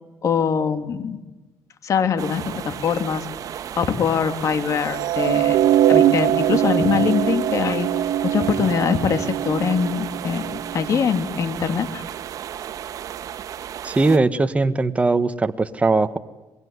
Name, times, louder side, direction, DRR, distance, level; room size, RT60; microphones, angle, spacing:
voice 1, 0.2-1.2 1.8-3.3 3.8-7.9 8.2-12.0, left 6 dB, 55° left, 10 dB, 2.7 m, -23 dB
sound 1, 2.2-14.2, right 10 dB, 65° right, 1.4 m, -34 dB
sound 2, 4.9-11.1, right 11 dB, 85° right, 1.4 m, -22 dB
voice 2, 13.8-16.2, right 3 dB, 20° right, 10 dB, 1.3 m, -20 dB
25.0 x 22.0 x 9.6 m, 1.1 s
cardioid pair, 95°, 7 cm